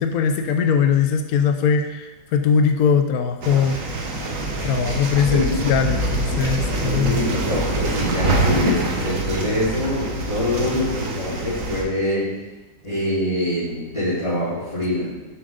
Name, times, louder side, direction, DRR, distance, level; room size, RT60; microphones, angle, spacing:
voice 1, 0.0-3.8 4.6-7.2, left 6 dB, 65° left, 6 dB, 1.0 m, -20 dB
sound 1, 3.4-11.8, right 2 dB, 50° right, 1.7 m, -25 dB
voice 2, 6.8-12.3 12.8-15.1, left 1 dB, 20° left, -13 dB, 3.9 m, -24 dB
11.5 x 7.8 x 3.8 m, 1.1 s
omnidirectional pair, 1.9 m